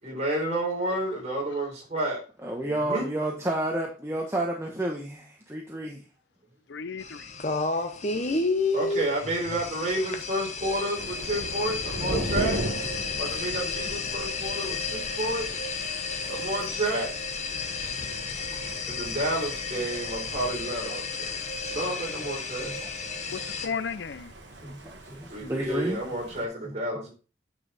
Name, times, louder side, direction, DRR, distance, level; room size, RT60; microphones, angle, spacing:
voice 1, 0.0-2.3 2.6-3.1 8.7-12.7 13.2-15.7 16.3-17.1 18.9-21.4 21.7-22.7 25.3-27.1, right 1 dB, 35° right, 3.9 m, -30 dB
voice 2, 2.4-6.0 18.4-18.6 20.9-21.0 22.7-22.9 23.3-23.4 24.6-26.0 26.6-26.7, right 1 dB, 15° right, 1.1 m, -31 dB
voice 3, 6.7-7.3 23.3-24.3, left 6 dB, 60° left, 0.5 m, -34 dB
sound 1, 7.0-23.7, left 4 dB, 35° left, 1.0 m, -32 dB
Thunder, 10.9-26.4, right 1 dB, 60° right, 1.6 m, -38 dB
9.3 x 5.7 x 4.1 m
head